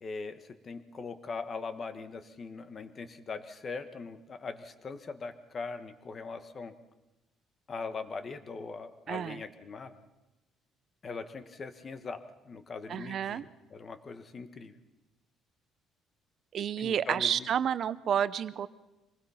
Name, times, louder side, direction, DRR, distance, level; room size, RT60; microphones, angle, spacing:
voice 1, 0.0-6.7 7.7-10.0 11.0-14.7 16.8-17.5, left 4 dB, 30° left, 10 dB, 1.4 m, -41 dB
voice 2, 9.1-9.4 12.9-13.4 16.5-18.7, right 9 dB, 50° right, 16 dB, 0.7 m, -30 dB
25.0 x 19.5 x 5.8 m, 1.0 s
cardioid pair, 140°, 0 cm